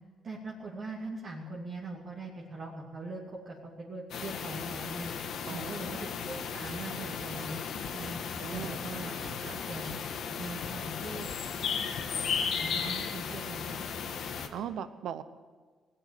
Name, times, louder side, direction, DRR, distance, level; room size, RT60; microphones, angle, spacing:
voice 1, 0.2-5.1 5.5-7.6 7.9-8.2 8.5-9.1 9.7-10.0 10.3-11.3 12.6-13.8, right 2 dB, 50° right, -4 dB, 2.7 m, -41 dB
sound 1, 4.1-14.5, left 6 dB, 70° left, 1.4 m, -35 dB
voice 2, 5.5-6.1 8.4-8.8 9.1-9.6 14.5-15.2, right 9 dB, 75° right, 12 dB, 0.9 m, -40 dB
sound 2, 6.6-6.8 7.4-7.5 8.0-8.2 8.6-8.8 9.2-9.4 9.8-10.0 10.4-10.6 11.0-11.2, equal, 5° right, 2.6 m, -51 dB
sound 3, 7.1-7.2 7.8-7.9 8.5-8.6 9.2-9.3 9.9-10.0 10.6-10.7 11.2-11.3 11.8-12.0, left 5 dB, 90° left, 1.9 m, -45 dB
19.0 x 7.9 x 9.4 m, 1.5 s
cardioid pair, 90°, 0 cm